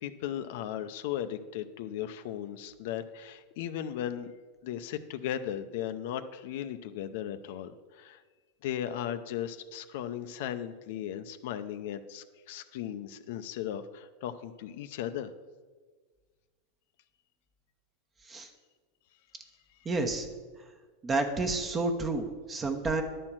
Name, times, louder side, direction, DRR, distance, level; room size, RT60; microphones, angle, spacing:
voice 1, 0.0-4.3 4.6-8.2 8.6-15.3, left 10 dB, 65° left, 10 dB, 0.5 m, -36 dB
voice 2, 19.8-20.3 21.0-23.0, right 3 dB, 20° right, 5 dB, 1.0 m, -30 dB
11.0 x 4.4 x 7.4 m, 1.4 s
supercardioid pair, 140°, 0 cm